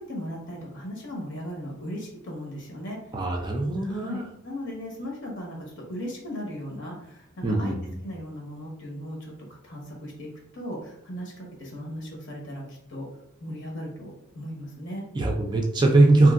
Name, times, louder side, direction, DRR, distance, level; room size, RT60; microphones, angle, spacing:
voice 1, 0.1-3.0 3.8-7.7 8.0-9.3 9.6-13.1 13.4-15.0, equal, 60° left, -1 dB, 1.0 m, -37 dB
voice 2, 3.1-4.3 7.4-7.7 15.1-16.3, right 2 dB, 20° right, 1 dB, 0.3 m, -21 dB
3.0 x 2.6 x 2.4 m, 0.76 s
head